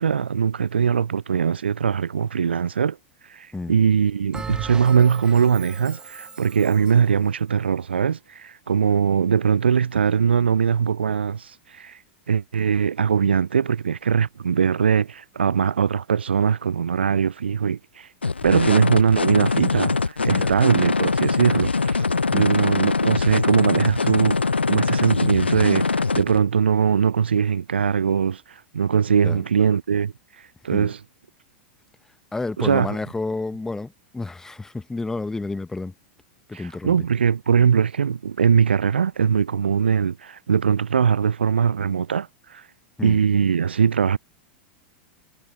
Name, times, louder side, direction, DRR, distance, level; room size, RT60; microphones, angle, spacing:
voice 1, 0.0-3.0 3.3-12.0 12.3-18.1 18.4-30.1 30.6-31.0 32.6-33.0 36.5-42.7 43.0-44.2, right 7 dB, 80° right, 0.4 m, -21 dB
Bell, 4.3-7.1, right 5 dB, 15° right, 1.1 m, -37 dB
sound 1, 18.2-26.4, left 4 dB, 85° left, 0.7 m, -23 dB
voice 2, 32.3-35.9 36.5-37.0 43.0-43.2, left 3 dB, 10° left, 1.0 m, -30 dB
figure-of-eight pair, 95°, 6 cm